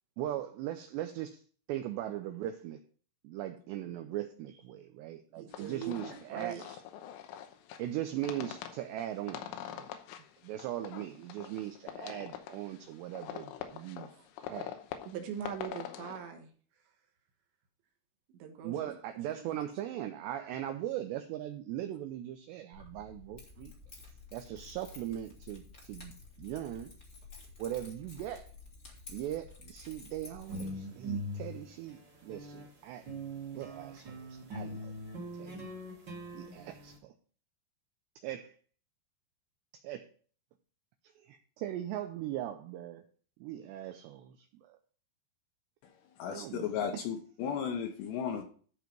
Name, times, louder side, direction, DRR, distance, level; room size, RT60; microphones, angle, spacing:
voice 1, 0.2-1.4 1.7-2.8 3.2-6.6 7.8-9.9 10.4-14.1 14.4-14.8 18.6-23.7 24.3-26.1 26.4-26.9 27.6-28.5 29.1-33.1 33.5-34.9 35.4-35.7 36.3-37.1 38.2-38.5 39.8-40.1 41.2-43.0 43.4-44.8 46.3-46.7 46.9-47.0, right 12 dB, 85° right, 7 dB, 2.4 m, -39 dB
voice 2, 5.4-6.8 14.1-14.2 15.1-16.5 18.3-19.0 19.3-19.4, right 8 dB, 70° right, 4 dB, 3.3 m, -42 dB
sound 1, 5.5-16.2, left 10 dB, 90° left, 3.5 m, -45 dB
Keys jangling, 22.7-30.7, left 4 dB, 45° left, 0.8 m, -52 dB
sound 2, 30.4-32.7 33.0-37.0, right 1 dB, 40° right, 1.5 m, -41 dB
voice 3, 46.2-48.4, left 7 dB, 75° left, 4 dB, 2.7 m, -35 dB
13.5 x 4.6 x 5.2 m, 0.44 s
omnidirectional pair, 5.7 m